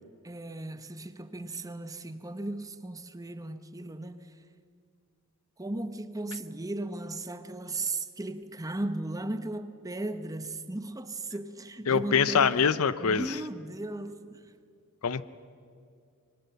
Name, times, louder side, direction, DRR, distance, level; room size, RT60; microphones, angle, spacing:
voice 1, 0.2-4.4 5.6-12.7 13.0-14.5, right 2 dB, 15° right, 0.8 m, -36 dB
voice 2, 11.9-13.3 15.0-15.2, left 6 dB, 70° left, 0.6 m, -24 dB
24.5 x 22.0 x 6.9 m
head